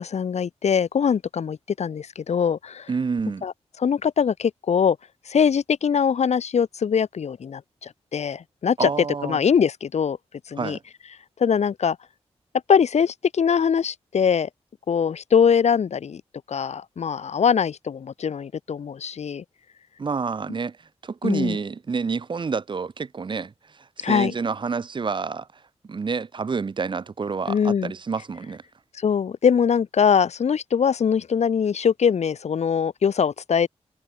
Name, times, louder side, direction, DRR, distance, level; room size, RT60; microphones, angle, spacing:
voice 1, 0.0-2.9 3.4-3.5 3.8-5.0 5.3-8.9 9.2-10.2 10.5-10.8 11.4-12.0 12.7-14.5 14.9-16.2 16.5-19.4 21.2-21.6 24.0-24.3 27.5-27.9 29.0-33.7, left 7 dB, 85° left, 4.1 m, -22 dB
voice 2, 2.9-3.5 8.8-9.4 10.6-10.8 20.0-28.6, right 5 dB, 45° right, 5.2 m, -29 dB
wide cardioid pair, 175°, 11 cm